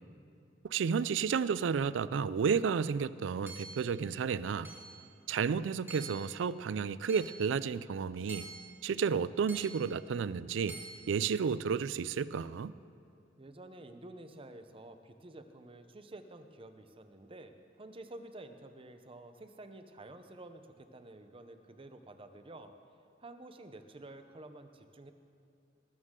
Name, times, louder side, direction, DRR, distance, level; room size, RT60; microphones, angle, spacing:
voice 1, 0.6-4.7 5.3-8.5 8.8-10.8 11.1-12.7, right 6 dB, 75° right, 0.4 m, -32 dB
Hammer / Chink clink, 3.5-3.9 4.6-5.0 5.9-6.3 7.1-7.5 8.3-8.8 9.5-9.9 10.7-10.9, right 3 dB, 10° right, 2.3 m, -47 dB
voice 2, 13.4-22.7 23.2-25.1, right 2 dB, 30° right, 0.7 m, -50 dB
19.0 x 13.0 x 3.8 m
head